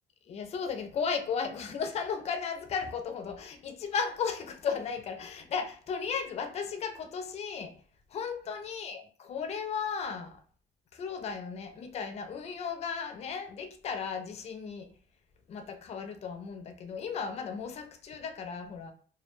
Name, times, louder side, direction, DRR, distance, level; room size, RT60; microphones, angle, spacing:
voice 1, 0.3-7.7 8.1-10.4 10.9-14.9 15.5-18.9, left 6 dB, 40° left, 0.4 m, -35 dB
2.2 x 2.1 x 3.0 m
cardioid pair, 110°, 17 cm